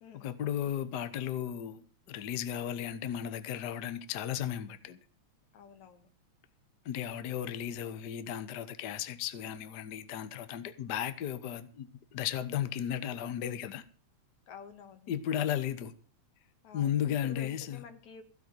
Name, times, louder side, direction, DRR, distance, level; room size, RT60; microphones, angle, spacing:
voice 1, 0.1-5.0 6.8-13.8 15.1-15.9 16.7-17.8, left 10 dB, 60° left, 1.1 m, -35 dB
voice 2, 5.5-6.1 14.5-15.1 16.6-18.2, left 7 dB, 75° left, 2.9 m, -50 dB
16.0 x 5.8 x 9.3 m
omnidirectional pair, 3.3 m